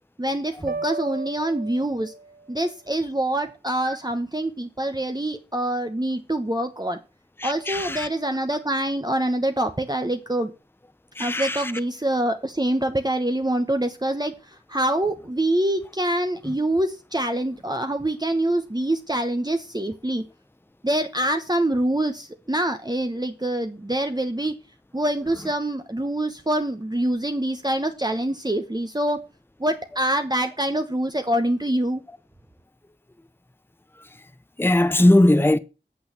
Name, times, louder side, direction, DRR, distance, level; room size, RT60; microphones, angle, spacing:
voice 1, 0.2-2.1 2.5-7.0 7.4-10.5 11.2-20.2 20.8-24.5 24.9-29.2 29.6-32.0, right 1 dB, 20° right, 1.0 m, -25 dB
sound 1, 0.7-2.6, right 3 dB, 60° right, 0.7 m, -34 dB
voice 2, 7.4-8.1 11.2-11.7 16.4-16.5 34.6-35.6, left 1 dB, 10° left, 0.7 m, -19 dB
8.6 x 6.4 x 8.0 m
wide cardioid pair, 40°, 19 cm